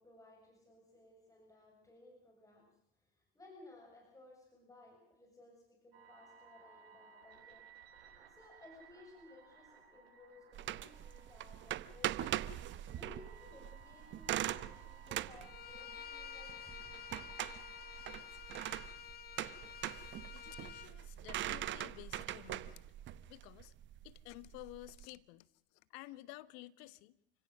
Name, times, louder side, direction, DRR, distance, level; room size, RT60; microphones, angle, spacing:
voice 1, 0.0-2.7 3.1-7.7 8.1-12.3 12.9-16.8, left 2 dB, 10° left, 7.2 m, -59 dB
sound 1, 5.9-18.7, right 5 dB, 75° right, 7.6 m, -60 dB
sound 2, 10.5-25.0, right 13 dB, 40° right, 1.0 m, -42 dB
Bowed string instrument, 15.4-20.9, left 9 dB, 30° left, 1.7 m, -50 dB
voice 2, 20.3-22.8 23.3-23.7 24.0-25.5 25.9-27.2, left 18 dB, 55° left, 1.2 m, -52 dB
29.0 x 17.0 x 6.7 m
hypercardioid pair, 85°, 30 cm